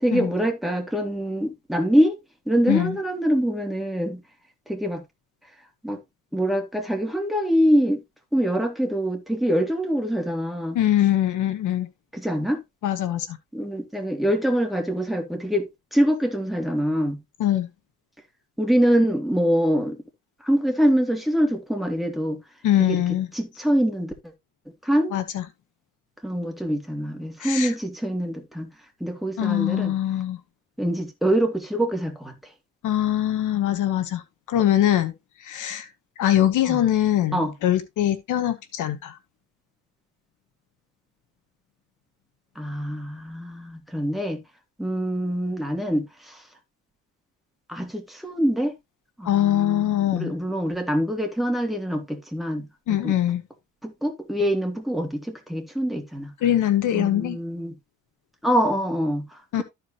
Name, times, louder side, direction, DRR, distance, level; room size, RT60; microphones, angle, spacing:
voice 1, 0.0-2.1 2.5-4.2 4.7-5.0 5.8-6.0 6.3-8.0 8.3-10.8 12.1-12.6 13.5-17.2 18.6-20.0 20.4-22.4 22.8-23.0 23.3-24.1 24.8-25.1 26.2-28.7 29.0-29.9 30.8-32.3 36.7-36.8 37.3-37.5 42.6-44.4 44.8-46.4 47.7-48.7 49.2-52.6 52.9-53.1 53.8-56.3 56.9-57.7 58.4-59.6, equal, ahead, 2.8 m, -24 dB
voice 2, 2.7-3.0 10.7-11.9 12.8-13.4 17.4-17.7 22.6-23.3 25.1-25.4 27.4-27.7 29.4-30.4 32.8-34.2 34.5-35.1 35.4-35.9 36.2-39.2 49.2-50.3 52.9-53.4 56.4-57.4 59.5-59.6, left 12 dB, 80° left, 1.2 m, -22 dB
13.5 x 4.8 x 2.9 m
cardioid pair, 90°, 30 cm